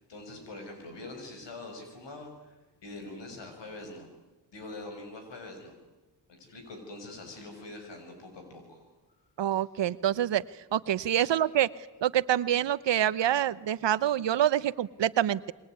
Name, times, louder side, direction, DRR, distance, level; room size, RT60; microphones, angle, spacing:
voice 1, 0.1-2.6 2.8-4.1 4.5-5.7 6.3-8.8 9.5-9.6 11.1-11.3, left 2 dB, 80° left, 4 dB, 7.4 m, -44 dB
voice 2, 9.4-10.4 10.7-11.7 12.0-15.5, right 11 dB, 80° right, 17 dB, 1.0 m, -26 dB
26.5 x 22.5 x 9.6 m, 1.1 s
cardioid pair, 65°, 42 cm